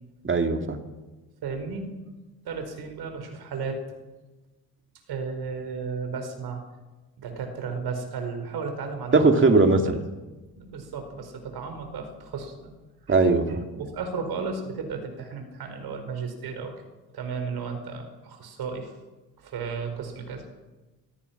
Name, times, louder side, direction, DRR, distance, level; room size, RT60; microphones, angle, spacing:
voice 1, 0.2-0.8 9.1-10.0 13.1-13.6, right 3 dB, 35° right, 5 dB, 2.4 m, -19 dB
voice 2, 1.4-2.0 2.4-3.8 5.1-6.6 7.2-9.5 9.9-10.0 10.6-12.7 13.1-13.2 13.5-16.7 17.1-18.9 19.4-20.5, right 5 dB, 90° right, 6 dB, 4.9 m, -34 dB
24.5 x 18.5 x 5.9 m, 1.2 s
cardioid pair, 120°, 37 cm